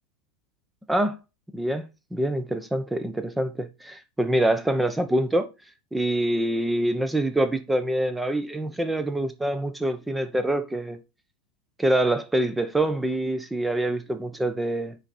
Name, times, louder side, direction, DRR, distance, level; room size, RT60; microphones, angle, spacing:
voice 1, 1.5-5.5 5.9-11.0 11.8-15.0, right 1 dB, 5° right, 0.7 m, -25 dB
8.7 x 5.4 x 4.2 m
supercardioid pair, 165°, 0 cm